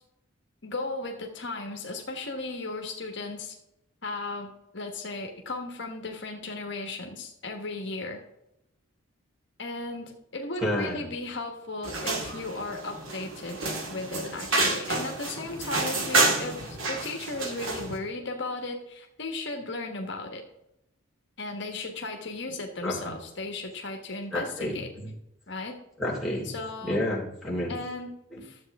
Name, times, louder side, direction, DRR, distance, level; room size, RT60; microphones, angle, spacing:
voice 1, 0.6-3.5 4.0-8.2 9.6-20.4 21.4-24.9 25.5-25.8 26.5-27.0 27.7-28.1 28.4-28.6, left 2 dB, 55° left, 3 dB, 1.4 m, -36 dB
voice 2, 10.6-11.1 22.8-23.1 24.3-25.1 26.0-26.5 26.8-27.8 28.3-28.4, left 1 dB, ahead, -3 dB, 3.0 m, -30 dB
sound 1, 11.8-18.0, right 2 dB, 80° right, 2.0 m, -29 dB
13.0 x 7.8 x 3.6 m, 0.84 s
head